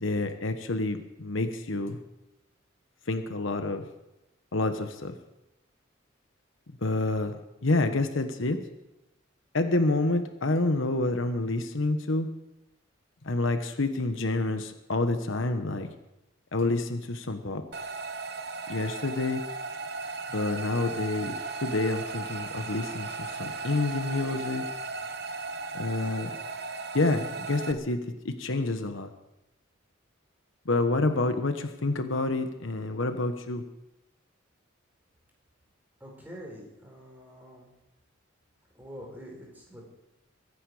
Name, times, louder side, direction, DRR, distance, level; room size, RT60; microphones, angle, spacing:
voice 1, 0.0-2.0 3.1-3.9 4.5-5.2 6.8-7.4 7.6-8.6 9.5-12.3 13.2-15.9 16.5-17.6 18.7-19.4 20.3-24.6 25.7-26.3 26.9-29.1 30.6-33.6, left 2 dB, 70° left, 7 dB, 1.2 m, -28 dB
sound 1, 17.7-27.7, right 4 dB, 50° right, 0.9 m, -36 dB
voice 2, 36.0-37.7 38.7-39.8, equal, 10° right, -2 dB, 4.5 m, -45 dB
23.5 x 10.0 x 4.9 m, 0.92 s
head